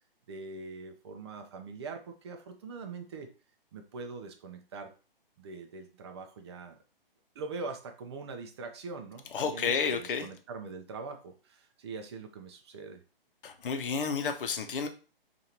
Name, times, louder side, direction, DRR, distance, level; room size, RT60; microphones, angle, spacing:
voice 1, 0.3-3.3 3.7-4.9 5.4-6.8 7.3-13.0, right 4 dB, 30° right, 5 dB, 0.5 m, -42 dB
voice 2, 9.3-10.3 13.4-14.9, left 5 dB, 65° left, 6 dB, 0.8 m, -31 dB
4.9 x 2.5 x 2.8 m, 0.35 s
hypercardioid pair, 145°, 29 cm